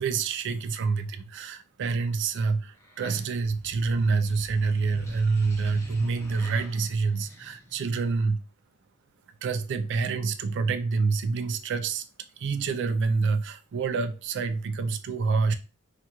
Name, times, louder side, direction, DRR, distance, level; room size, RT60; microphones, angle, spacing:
voice 1, 0.0-8.4 9.4-12.1 12.4-15.5, right 4 dB, 55° right, 0.3 m, -27 dB
sound 1, 2.8-8.1, equal, 15° left, 0.6 m, -45 dB
2.4 x 2.3 x 2.9 m
head